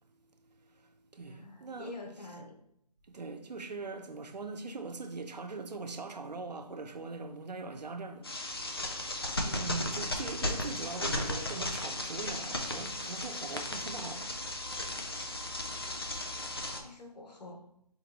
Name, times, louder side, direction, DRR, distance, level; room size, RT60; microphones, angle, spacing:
voice 1, 0.5-1.9 3.1-14.4, right 3 dB, 85° right, 0.7 m, -42 dB
voice 2, 1.3-2.6 16.6-17.6, left 2 dB, 80° left, 1.0 m, -47 dB
sound 1, 8.2-16.8, left 1 dB, 35° left, 0.6 m, -35 dB
4.3 x 3.9 x 3.0 m
figure-of-eight pair, 175°, 21 cm